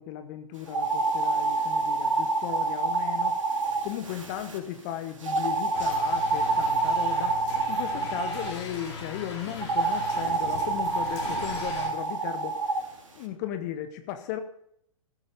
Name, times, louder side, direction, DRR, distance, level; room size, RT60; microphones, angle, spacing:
voice 1, 0.0-3.4 3.8-7.4 7.7-12.6 13.1-14.4, left 11 dB, 30° left, 9 dB, 1.0 m, -36 dB
sound 1, 0.7-4.6 5.2-8.5 9.6-12.8, right 3 dB, 65° right, 2.9 m, -27 dB
sound 2, 5.7-11.9, left 4 dB, 50° left, 3.8 m, -40 dB
15.0 x 8.3 x 5.0 m, 0.72 s
figure-of-eight pair, 115°, 18 cm